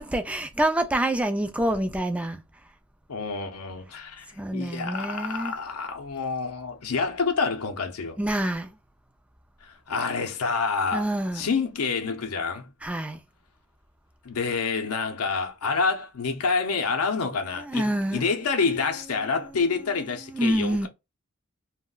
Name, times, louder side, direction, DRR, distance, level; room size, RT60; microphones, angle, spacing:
voice 1, 0.0-2.4 4.4-5.5 8.2-8.7 10.9-11.4 12.8-13.2 17.7-18.3 20.3-20.9, right 1 dB, 5° right, 0.3 m, -26 dB
voice 2, 3.1-8.2 9.6-12.7 14.2-20.9, left 4 dB, 85° left, 0.6 m, -28 dB
2.3 x 2.1 x 3.7 m
head